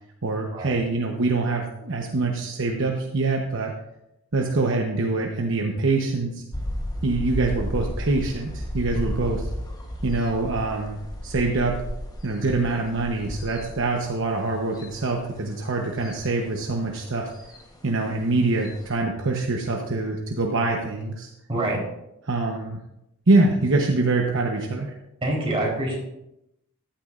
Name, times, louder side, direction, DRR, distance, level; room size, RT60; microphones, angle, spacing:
voice 1, 0.2-3.7 4.3-6.4 7.0-9.4 10.0-11.0 11.2-11.8 12.2-17.3 17.8-21.3 22.3-22.8 23.3-24.9, right 3 dB, 60° right, 1 dB, 1.0 m, -24 dB
sound 1, 6.5-19.0, equal, 15° left, 1.1 m, -34 dB
voice 2, 21.5-21.8 25.2-26.0, right 1 dB, 25° right, -3 dB, 3.8 m, -26 dB
14.0 x 11.5 x 2.5 m, 0.86 s
head